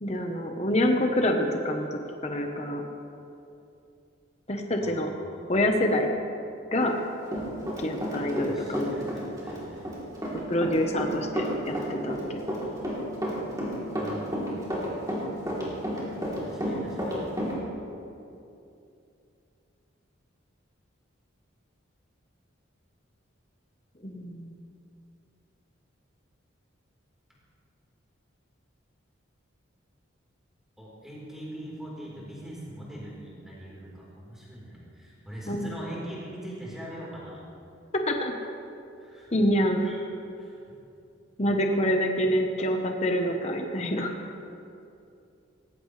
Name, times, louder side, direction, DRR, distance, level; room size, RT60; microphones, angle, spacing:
voice 1, 0.0-2.8 4.5-5.1 5.5-6.1 6.7-7.0 7.8-9.0 10.5-12.4 24.0-24.5 35.5-35.7 38.1-38.3 39.3-39.9 41.4-44.1, equal, 30° left, 3 dB, 1.0 m, -26 dB
voice 2, 4.8-5.5 8.4-9.8 14.0-14.5 16.4-17.2 30.8-37.5 39.0-39.3 39.8-40.0 40.4-40.8, equal, ahead, -6 dB, 4.0 m, -42 dB
Run, 6.8-8.5 8.7-17.5, equal, 15° right, 3.2 m, -31 dB
18.5 x 16.5 x 3.3 m, 2.6 s
head